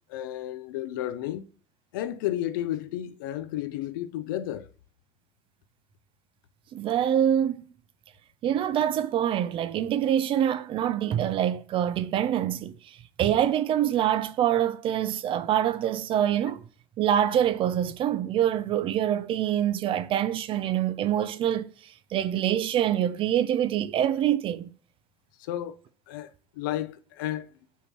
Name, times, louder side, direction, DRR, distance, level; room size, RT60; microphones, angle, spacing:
voice 1, 0.1-1.5 1.9-4.7 25.5-25.7 26.1-26.3 26.6-27.5, left 13 dB, 75° left, 0.6 m, -32 dB
voice 2, 6.7-7.6 8.4-12.8 13.2-16.6 17.0-21.7 22.1-24.7, right 10 dB, 55° right, 0.7 m, -25 dB
5.6 x 4.6 x 5.5 m
hypercardioid pair, 55°, 11 cm